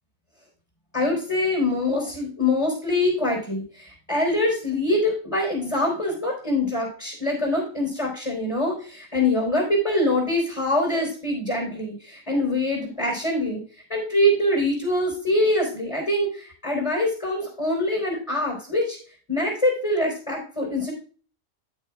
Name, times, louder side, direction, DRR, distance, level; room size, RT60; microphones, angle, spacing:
voice 1, 0.9-13.6 13.9-19.0 19.3-20.9, left 1 dB, 25° left, -2 dB, 4.0 m, -24 dB
14.0 x 6.5 x 2.4 m, 0.40 s
omnidirectional pair, 1.4 m